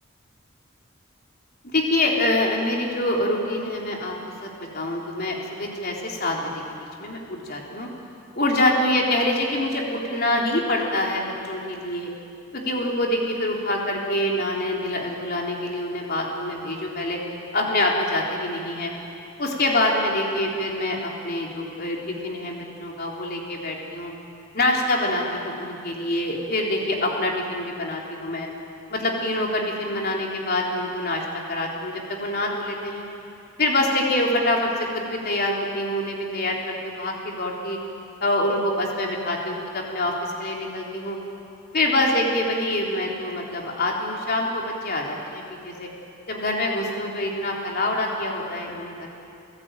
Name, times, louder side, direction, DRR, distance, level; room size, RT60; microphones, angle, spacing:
voice 1, 1.7-4.1 4.4-6.5 7.0-7.9 8.3-12.1 12.5-17.2 17.5-18.9 19.4-24.1 24.5-28.5 28.9-33.0 33.6-37.8 38.2-41.2 41.7-45.9 46.3-49.1, left 1 dB, 50° left, -1 dB, 3.7 m, -25 dB
29.5 x 15.5 x 9.1 m, 2.7 s
head